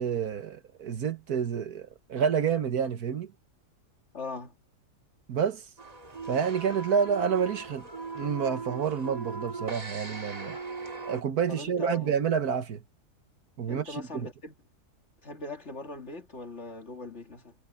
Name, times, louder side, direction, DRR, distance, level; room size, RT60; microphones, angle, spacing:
voice 1, 0.0-3.3 5.3-5.6 6.3-7.9 8.1-10.6 11.1-12.8 13.6-14.3, right 7 dB, 70° right, 1.7 m, -29 dB
voice 2, 4.1-4.6 11.5-12.2 13.7-14.5 15.2-17.6, left 3 dB, 45° left, 2.5 m, -40 dB
sound 1, 5.8-11.2, right 4 dB, 25° right, 1.8 m, -39 dB
omnidirectional pair, 1.7 m